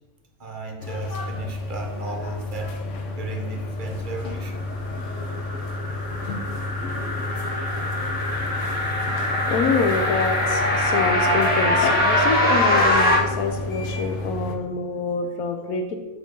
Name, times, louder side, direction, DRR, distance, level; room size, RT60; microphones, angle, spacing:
voice 1, 0.4-2.8 3.1-4.5, right 3 dB, 40° right, 3 dB, 1.0 m, -35 dB
sound 1, 0.8-14.6, left 2 dB, 60° left, 1.0 m, -30 dB
sound 2, 4.8-13.2, left 1 dB, 5° left, 1.6 m, -23 dB
voice 2, 9.5-16.0, left 4 dB, 90° left, 4 dB, 1.1 m, -26 dB
7.3 x 3.7 x 5.3 m, 1.2 s
omnidirectional pair, 1.5 m